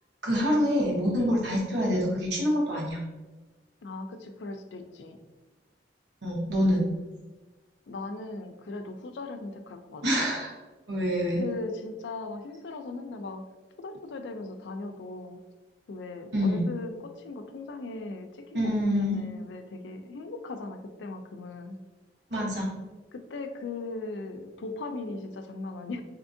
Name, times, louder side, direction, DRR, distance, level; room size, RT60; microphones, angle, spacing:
voice 1, 0.2-3.0 6.2-6.9 10.0-10.5 10.9-11.4 16.3-16.7 18.5-19.3 22.3-22.7, equal, 80° right, -3 dB, 1.1 m, -26 dB
voice 2, 3.8-5.2 7.9-10.3 11.4-13.4 13.8-15.4 15.9-21.8 23.1-26.0, left 3 dB, 85° left, 6 dB, 0.4 m, -38 dB
3.5 x 2.7 x 2.6 m, 1.2 s
head